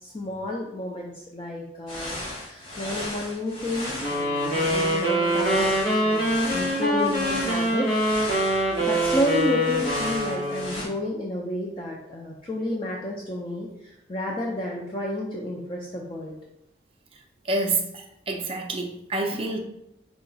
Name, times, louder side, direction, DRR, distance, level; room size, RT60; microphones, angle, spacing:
voice 1, 0.0-5.7 6.0-7.9 8.5-13.7 14.1-16.4, left 1 dB, 30° left, -2 dB, 0.5 m, -31 dB
sound 1, 1.9-10.8, left 1 dB, 45° left, 1.5 m, -36 dB
sound 2, 4.0-10.8, equal, 85° left, 1.4 m, -24 dB
voice 2, 17.5-19.6, right 2 dB, 30° right, 3 dB, 0.5 m, -28 dB
4.9 x 2.3 x 3.9 m, 0.83 s
head